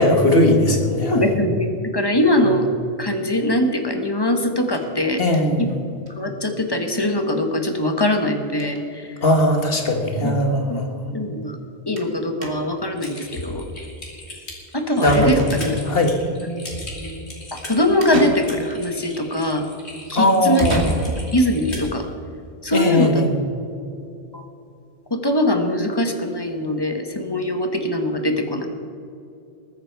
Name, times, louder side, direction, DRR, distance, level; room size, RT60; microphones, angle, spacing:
voice 1, 0.0-1.3 5.2-5.8 9.2-10.9 15.0-15.4 15.9-16.2 20.2-20.9 22.7-23.3, left 1 dB, 60° left, 4 dB, 1.8 m, -18 dB
voice 2, 1.1-2.7 3.0-5.2 5.6-5.8 6.1-9.1 10.2-10.4 10.7-10.8 11.1-11.6 11.9-13.9 14.7-15.8 16.4-16.6 17.0-17.2 17.5-19.7 20.1-20.8 21.3-22.1 22.6-23.2 24.3-24.4 25.1-28.7, left 1 dB, 20° left, 5 dB, 1.3 m, -22 dB
sound 1, 4.7-5.7 6.1-6.2 6.4-6.5 6.8-6.9 8.0-8.3 8.5-8.9 9.7-9.8 10.1-10.2 12.0-12.1 12.4-12.9 14.7-14.8 15.2-16.0 18.0-18.9 20.6-21.5, right 1 dB, 75° right, 2.2 m, -32 dB
Typing, 13.0-21.9, equal, 80° left, 3.1 m, -32 dB
21.0 x 9.3 x 4.7 m, 2.7 s
omnidirectional pair, 1.1 m